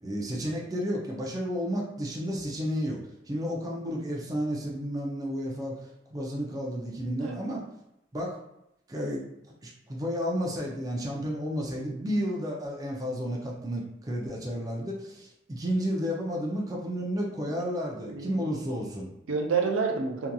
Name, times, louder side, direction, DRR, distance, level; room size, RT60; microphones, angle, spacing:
voice 1, 0.0-3.0 3.3-7.6 8.1-8.4 8.9-9.3 9.6-19.1, equal, 20° right, -2 dB, 0.4 m, -32 dB
voice 2, 17.5-18.4 19.3-20.3, right 5 dB, 85° right, 2 dB, 0.4 m, -30 dB
2.8 x 2.4 x 2.2 m, 0.82 s
head